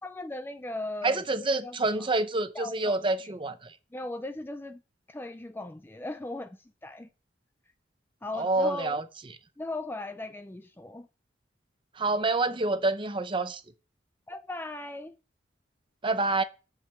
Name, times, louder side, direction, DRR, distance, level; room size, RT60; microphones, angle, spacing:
voice 1, 0.0-1.2 1.6-2.1 2.5-3.3 3.9-4.8 5.1-7.1 8.2-9.0 9.6-11.1 14.3-15.2, left 2 dB, 10° left, 0.4 m, -38 dB
voice 2, 1.0-3.7 8.3-9.0 12.0-13.6 16.0-16.4, right 2 dB, 25° right, 0.7 m, -27 dB
6.5 x 6.1 x 7.3 m
head